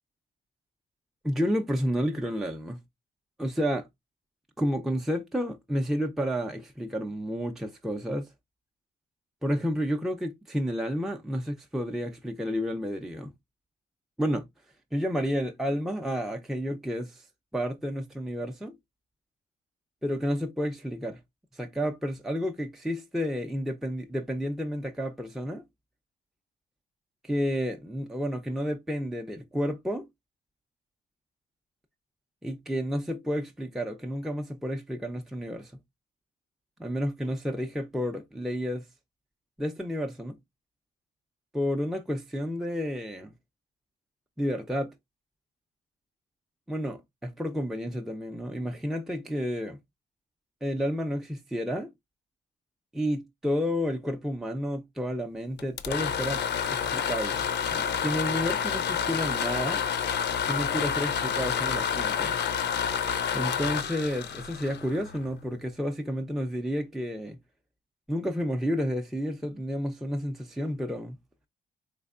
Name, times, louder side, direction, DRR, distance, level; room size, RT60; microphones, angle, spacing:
voice 1, 1.2-2.8 3.4-3.9 4.6-8.3 9.4-13.3 14.2-14.5 14.9-17.3 17.5-18.7 20.0-21.2 21.5-25.6 27.2-30.1 32.4-35.7 36.8-38.9 39.6-40.4 41.5-43.3 44.4-44.9 46.7-49.8 50.6-51.9 52.9-56.4 56.7-59.8 60.4-62.4 63.3-67.4 68.1-71.2, equal, ahead, 0.4 m, -31 dB
sound 1, 55.6-65.4, left 7 dB, 60° left, 0.5 m, -29 dB
3.5 x 3.3 x 2.4 m
cardioid pair, 90°, 20 cm